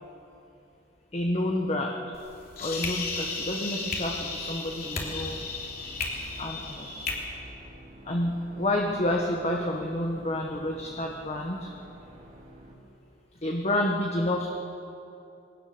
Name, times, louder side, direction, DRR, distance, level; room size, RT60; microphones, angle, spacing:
voice 1, 1.1-2.1 2.6-5.4 6.4-6.9 8.0-11.7 13.4-14.5, left 1 dB, 35° left, 1 dB, 1.4 m, -29 dB
sound 1, 2.1-7.1, left 4 dB, 55° left, 3.3 m, -34 dB
sound 2, 4.8-12.7, equal, 40° right, 3.1 m, -50 dB
22.0 x 18.5 x 6.8 m, 2.8 s
head